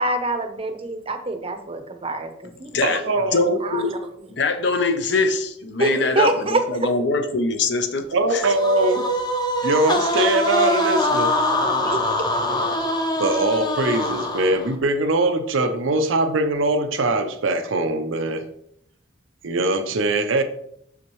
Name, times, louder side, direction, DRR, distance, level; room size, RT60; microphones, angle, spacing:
voice 1, 0.0-3.2 3.6-4.0 5.8-6.6 11.8-12.0, right 2 dB, 30° right, 6 dB, 0.7 m, -25 dB
voice 2, 2.8-3.6 8.1-9.1 9.6-11.3 13.2-18.5 19.4-20.4, right 2 dB, 80° right, 8 dB, 0.6 m, -22 dB
voice 3, 3.3-3.9 4.3-8.4, left 3 dB, 60° left, 7 dB, 0.7 m, -23 dB
sound 1, 8.4-14.7, left 1 dB, 20° left, 0.7 m, -23 dB
6.3 x 5.9 x 3.1 m, 0.72 s
head